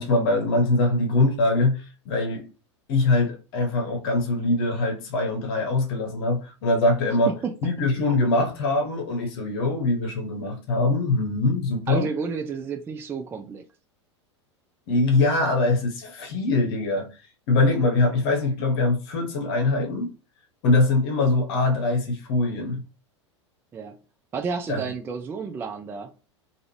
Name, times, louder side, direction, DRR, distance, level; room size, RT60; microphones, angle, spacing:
voice 1, 0.0-2.5 2.9-7.3 7.6-12.1 14.9-17.1 17.5-20.1 20.6-22.8 24.7-24.9, left 2 dB, 50° left, 1.0 m, -23 dB
voice 2, 7.3-7.6 11.9-13.6 23.7-23.9 24.3-26.1, right 5 dB, 15° right, 0.3 m, -31 dB
2.5 x 2.4 x 3.1 m
figure-of-eight pair, 85°, 15 cm